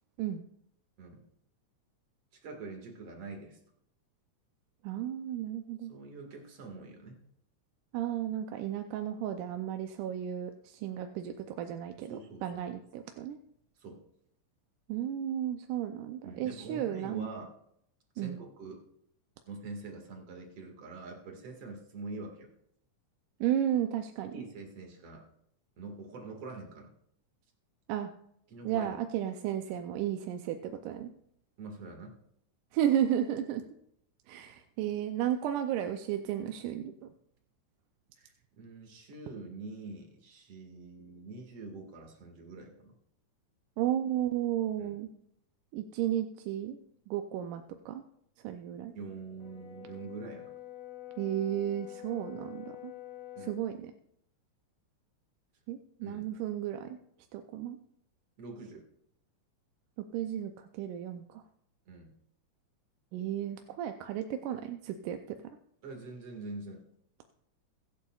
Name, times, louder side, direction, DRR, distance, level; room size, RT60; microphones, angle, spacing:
voice 1, 2.3-3.6 5.9-7.2 12.1-12.6 13.8-14.0 16.2-17.5 18.1-18.8 19.5-22.5 24.3-25.2 25.8-26.9 28.5-29.0 31.6-32.2 38.2-42.9 44.8-45.0 48.9-50.5 53.4-53.6 56.0-56.3 58.4-58.8 61.9-62.1 65.8-66.8, right 3 dB, 50° right, 2 dB, 2.8 m, -45 dB
voice 2, 4.8-5.9 7.9-13.4 14.9-17.3 18.2-18.4 23.4-24.3 27.9-28.1 28.6-31.1 32.7-33.6 34.3-37.1 43.8-45.1 45.7-46.8 47.1-48.0 48.4-48.9 51.2-52.9 53.4-53.9 55.7-57.0 57.3-57.8 60.1-61.4 63.1-65.4, right 10 dB, 85° right, 6 dB, 2.2 m, -33 dB
Brass instrument, 49.4-53.7, left 13 dB, 70° left, 2.2 m, -46 dB
23.0 x 8.4 x 2.4 m, 0.72 s
omnidirectional pair, 3.6 m